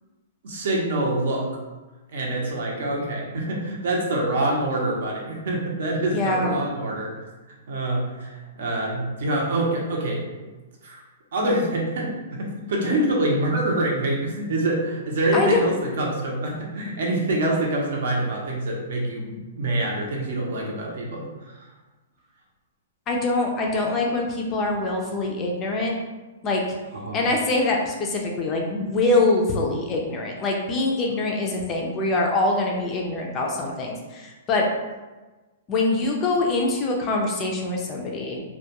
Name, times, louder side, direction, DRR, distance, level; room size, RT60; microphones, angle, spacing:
voice 1, 0.4-1.5 2.1-7.2 7.7-10.2 10.8-11.0 11.3-21.2 21.6-21.7 26.9-27.2, right 1 dB, 65° right, -1 dB, 0.6 m, -25 dB
voice 2, 6.1-6.6 15.3-15.7 23.1-25.9 26.4-26.6 27.1-34.7 35.7-38.4, left 2 dB, 20° left, 0 dB, 0.3 m, -24 dB
2.2 x 2.1 x 2.8 m, 1.2 s
hypercardioid pair, 160°, 0 cm